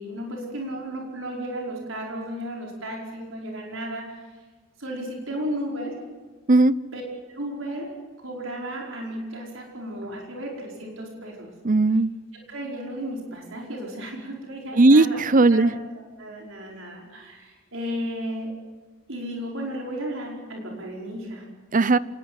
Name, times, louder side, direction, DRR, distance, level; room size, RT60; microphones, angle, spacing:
voice 1, 0.0-4.1 4.8-6.0 6.9-7.0 7.3-7.9 8.2-11.5 12.5-15.2 15.5-18.5 19.1-21.4, equal, 85° right, -1 dB, 5.0 m, -34 dB
voice 2, 11.6-12.1 14.8-15.7 21.7-22.0, right 2 dB, 40° right, 18 dB, 0.7 m, -17 dB
26.5 x 20.0 x 7.8 m, 1.4 s
head